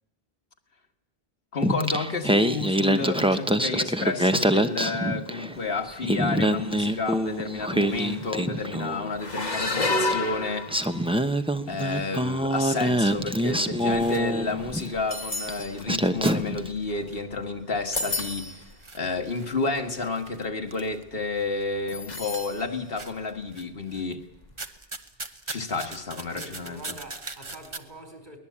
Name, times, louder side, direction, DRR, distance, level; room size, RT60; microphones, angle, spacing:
voice 1, 1.5-10.8 11.7-18.6 18.9-24.3 25.5-26.8, left 3 dB, 65° left, 1.9 m, -31 dB
Singing, 1.6-5.6 5.9-9.1 10.1-10.2 10.7-14.9 15.5-15.6 15.9-16.7, right 1 dB, 5° right, 0.9 m, -25 dB
sound 1, 5.9-6.3 6.6-6.8 7.6-7.7 7.9-8.4 9.2-11.3 12.0-12.2 13.0-17.4 17.7-18.7 19.4-19.5 19.8-20.1 21.9-22.7 23.0-23.1 24.4-24.5, left 2 dB, 45° left, 1.4 m, -32 dB
sound 2, 14.0-16.0 16.2-17.5 17.8-21.6 22.1-22.6 22.9-24.1 24.5-27.8, right 3 dB, 30° right, 1.2 m, -41 dB
voice 2, 26.3-28.4, right 1 dB, 50° right, 4.8 m, -45 dB
22.5 x 19.0 x 8.6 m
omnidirectional pair, 1.0 m